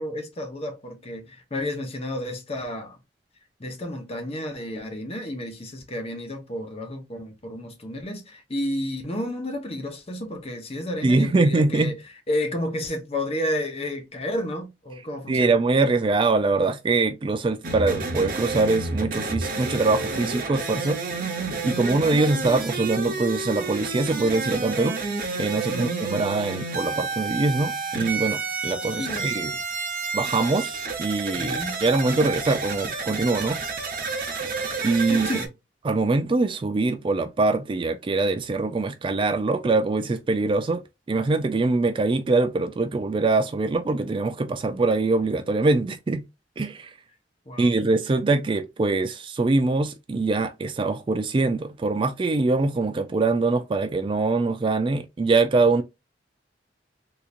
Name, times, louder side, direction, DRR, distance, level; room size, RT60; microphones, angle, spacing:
voice 1, 0.0-3.0 3.6-12.0 12.3-15.5 25.7-26.0 29.0-29.3 31.4-31.8 35.1-35.5 47.5-47.7, left 1 dB, 35° left, 0.9 m, -31 dB
voice 2, 11.0-11.9 15.3-21.3 21.6-25.0 25.4-29.5 30.1-33.6 34.8-35.3 35.8-40.8 41.1-46.2 46.6-46.9 47.6-55.8, right 3 dB, 30° right, 0.3 m, -23 dB
sound 1, 17.6-35.5, right 3 dB, 50° right, 0.9 m, -30 dB
3.7 x 2.9 x 2.4 m
head